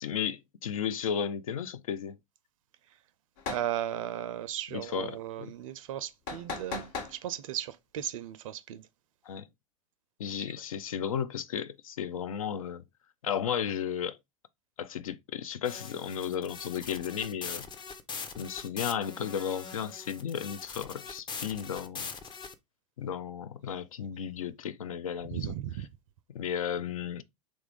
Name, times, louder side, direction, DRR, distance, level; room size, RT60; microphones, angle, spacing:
voice 1, 0.0-2.2 4.7-5.5 9.3-9.5 10.2-12.8 13.2-14.2 14.8-17.7 18.4-22.1 23.0-25.6 26.3-27.2, left 8 dB, 80° left, 0.4 m, -34 dB
sound 1, 3.4-3.7 6.3-7.2, left 4 dB, 55° left, 1.0 m, -37 dB
voice 2, 3.5-6.9 7.2-8.8 25.4-25.9, right 11 dB, 70° right, 0.4 m, -36 dB
sound 2, 15.6-22.5, left 5 dB, 25° left, 0.6 m, -42 dB
3.0 x 2.3 x 3.4 m
hypercardioid pair, 85°, 18 cm